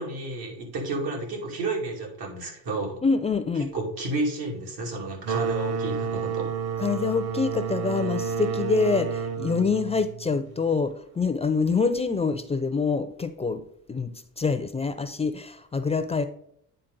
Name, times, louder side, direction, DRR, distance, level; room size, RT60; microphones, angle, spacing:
voice 1, 0.0-3.0 3.6-6.5, right 2 dB, 80° right, -1 dB, 2.6 m, -31 dB
voice 2, 3.0-3.7 6.8-13.6 13.9-14.1 14.4-16.2, left 4 dB, 15° left, 9 dB, 0.4 m, -26 dB
sound 1, 5.2-10.7, right 6 dB, 45° right, 0.6 m, -30 dB
9.0 x 4.2 x 3.9 m, 0.69 s
cardioid pair, 125°, 36 cm